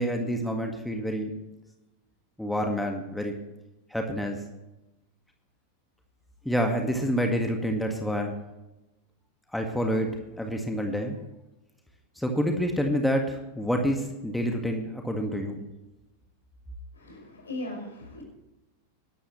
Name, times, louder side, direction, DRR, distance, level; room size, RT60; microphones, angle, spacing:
voice 1, 0.0-1.3 2.4-3.3 3.9-4.4 6.5-8.3 9.5-11.2 12.2-15.6, equal, 5° left, 2 dB, 1.9 m, -28 dB
voice 2, 16.9-18.2, left 1 dB, 75° left, 1 dB, 5.5 m, -38 dB
21.0 x 12.5 x 3.2 m, 0.99 s
figure-of-eight pair, 90°, 0 cm